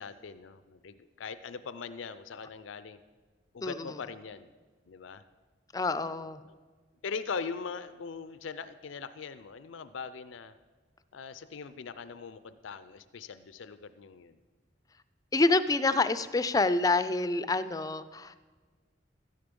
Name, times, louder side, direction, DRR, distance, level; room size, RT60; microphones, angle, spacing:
voice 1, 0.0-3.0 3.5-4.5 4.9-5.2 5.9-6.6 7.0-10.5 11.1-14.4, left 5 dB, 90° left, 13 dB, 0.5 m, -41 dB
voice 2, 5.7-6.4 15.3-18.4, left 3 dB, 20° left, 13 dB, 0.4 m, -27 dB
12.5 x 10.5 x 5.3 m, 1.4 s
head